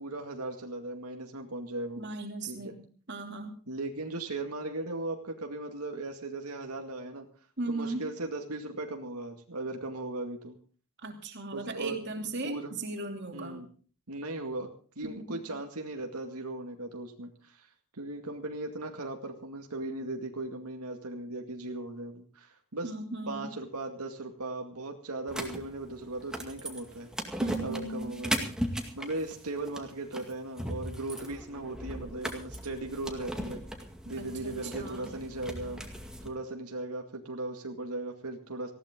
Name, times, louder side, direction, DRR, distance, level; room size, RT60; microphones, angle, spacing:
voice 1, 0.0-2.1 2.4-2.7 3.7-7.3 7.7-10.6 11.5-12.0 12.4-12.7 13.3-13.7 14.1-17.7 17.9-23.0 23.3-27.1 27.6-28.5 28.9-33.6 34.1-35.8 36.2-38.7, right 2 dB, 90° right, 3 dB, 2.2 m, -38 dB
voice 2, 2.0-2.8 3.1-3.5 7.6-8.0 11.0-13.6 15.0-15.4 22.8-23.5 27.4-28.2 34.2-35.1, right 2 dB, 50° right, 3 dB, 2.9 m, -37 dB
sound 1, 25.3-36.3, equal, 5° right, 2.1 m, -38 dB
19.0 x 15.5 x 3.8 m, 0.42 s
head